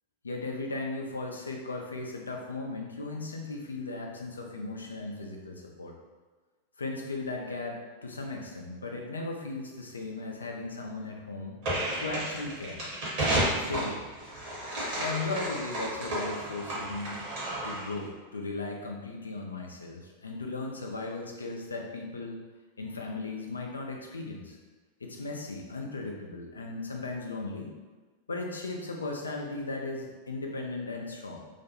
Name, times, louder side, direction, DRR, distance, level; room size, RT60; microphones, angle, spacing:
voice 1, 0.2-5.9 6.8-11.6 12.0-12.9 13.7-14.0 15.0-17.3 17.6-22.4 22.8-24.6 25.0-27.7 28.3-31.5, left 3 dB, 75° left, 1 dB, 0.4 m, -37 dB
sound 1, 11.6-18.0, right 1 dB, 45° right, 1.1 m, -32 dB
2.5 x 2.1 x 2.7 m, 1.3 s
figure-of-eight pair, 90°, 0 cm